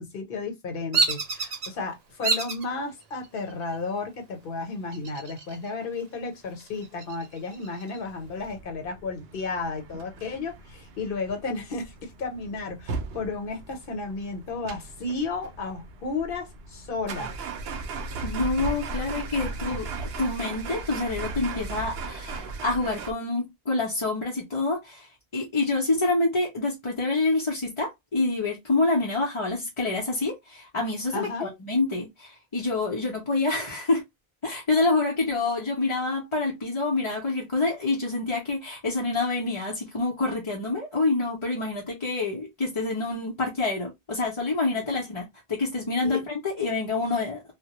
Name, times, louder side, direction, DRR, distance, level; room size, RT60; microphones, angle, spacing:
voice 1, 0.0-17.3 31.1-31.5 44.7-44.8 46.0-46.2, left 3 dB, 60° left, 0.9 m, -33 dB
Bird vocalization bird call bird song, 0.9-1.7 2.2-2.7 3.2-3.7 4.9-5.7 6.0-6.1 6.6-8.0, right 4 dB, 50° right, 0.5 m, -28 dB
sound 1, 8.1-23.1, right 3 dB, 75° right, 0.8 m, -37 dB
voice 2, 18.2-34.0 34.4-47.4, left 3 dB, 35° left, 0.5 m, -27 dB
2.1 x 2.0 x 2.8 m
omnidirectional pair, 1.1 m